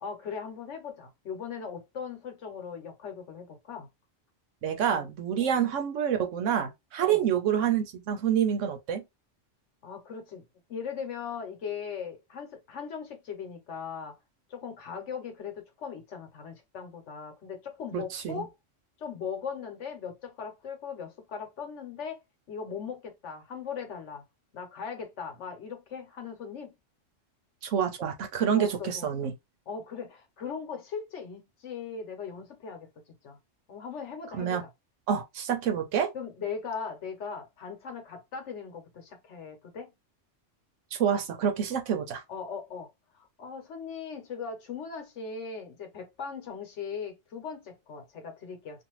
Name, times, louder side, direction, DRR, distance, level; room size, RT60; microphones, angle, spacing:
voice 1, 0.0-3.9 4.9-5.0 5.4-5.6 7.0-7.3 9.8-10.4 10.7-14.2 14.5-18.5 19.0-22.2 22.5-24.2 24.5-26.7 28.5-29.1 29.7-32.9 33.2-33.4 33.7-34.7 35.7-35.8 36.1-39.9 42.3-42.9 43.1-48.8, left 6 dB, 70° left, 1.1 m, -39 dB
voice 2, 4.6-9.0 17.9-18.4 27.6-29.3 34.4-34.6 35.1-36.1 40.9-42.2, right 8 dB, 75° right, 1.0 m, -27 dB
2.5 x 2.5 x 3.0 m
omnidirectional pair, 1.3 m